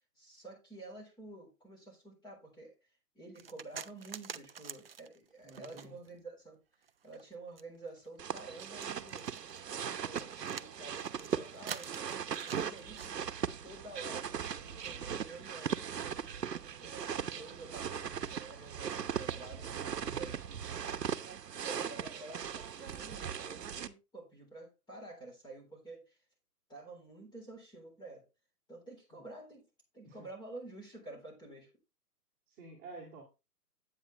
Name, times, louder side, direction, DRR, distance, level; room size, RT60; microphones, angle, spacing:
voice 1, 0.2-2.9 3.1-9.3 9.8-16.2 16.6-17.1 17.3-20.9 21.6-26.2 26.7-28.3 28.7-29.7 29.9-31.7, right 2 dB, 10° left, 3.7 m, -50 dB
sound 1, 3.3-6.2 6.7-13.1, right 7 dB, 40° right, 0.4 m, -47 dB
voice 2, 5.4-6.0 20.0-20.3 29.1-29.2 30.0-30.3 32.5-33.2, right 2 dB, 20° right, 2.5 m, -51 dB
sound 2, 8.2-23.9, right 8 dB, 80° right, 1.0 m, -39 dB
8.9 x 8.8 x 3.2 m
hypercardioid pair, 145°, 48 cm